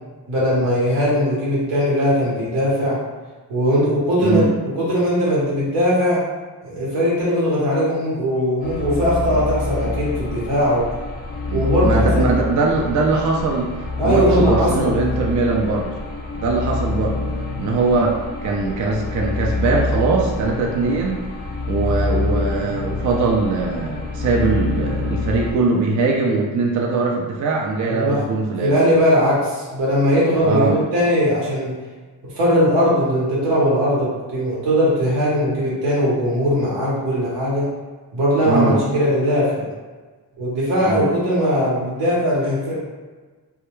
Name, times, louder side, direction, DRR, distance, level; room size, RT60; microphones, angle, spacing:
voice 1, 0.3-3.0 3.5-6.2 6.6-10.9 11.5-12.3 14.0-14.9 27.9-28.3 28.6-31.7 32.3-37.7 38.1-39.7 40.4-42.7, equal, 85° right, -6 dB, 1.0 m, -19 dB
voice 2, 4.2-4.5 11.5-13.8 14.0-15.9 16.4-17.2 17.6-21.3 21.7-28.7 30.4-30.8 38.5-38.8 40.8-41.1, right 3 dB, 45° right, -1 dB, 0.5 m, -21 dB
sound 1, 8.6-25.5, left 3 dB, 25° left, 0.4 m, -26 dB
2.2 x 2.1 x 3.0 m, 1.4 s
cardioid pair, 75°, 42 cm